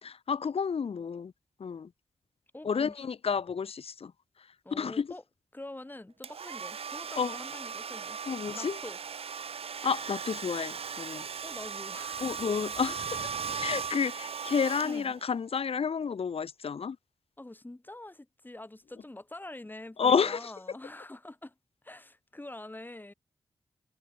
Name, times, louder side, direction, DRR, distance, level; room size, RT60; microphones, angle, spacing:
voice 1, 0.0-1.3 1.6-1.9 2.6-4.1 4.7-5.1 7.2-7.4 8.3-8.8 9.8-11.2 12.2-17.0 20.0-20.5, left 6 dB, 70° left, 3.4 m, -30 dB
voice 2, 2.5-3.1 4.6-5.2 5.5-8.2 8.5-9.0 11.4-12.3 14.8-15.1 17.4-21.5 21.8-23.1, left 1 dB, 20° left, 7.2 m, -45 dB
Domestic sounds home sounds, 6.2-15.4, right 6 dB, 70° right, 2.1 m, -38 dB
cardioid pair, 80°, 10 cm